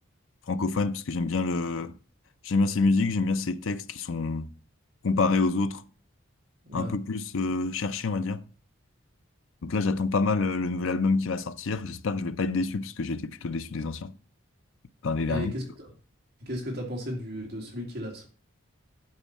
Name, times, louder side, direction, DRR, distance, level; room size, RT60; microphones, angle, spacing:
voice 1, 0.5-1.9 2.4-4.5 5.0-5.8 6.7-8.4 9.6-14.1 15.0-15.5, left 3 dB, 75° left, 0.6 m, -27 dB
voice 2, 15.3-15.9 16.4-18.3, equal, 50° right, 2.2 m, -35 dB
10.5 x 4.6 x 4.2 m
head